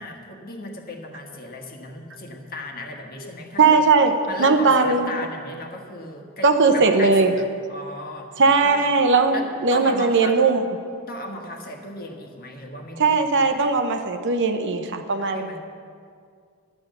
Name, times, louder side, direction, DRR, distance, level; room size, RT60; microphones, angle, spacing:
voice 1, 0.0-3.8 4.2-6.5 6.7-8.3 8.6-8.7 9.3-10.4 11.1-13.3 15.1-15.6, left 2 dB, 45° left, 2 dB, 1.5 m, -36 dB
voice 2, 3.6-5.3 6.4-7.3 8.4-10.6 13.0-15.5, right 4 dB, 60° right, 7 dB, 0.8 m, -19 dB
12.0 x 9.3 x 6.8 m, 2.2 s
head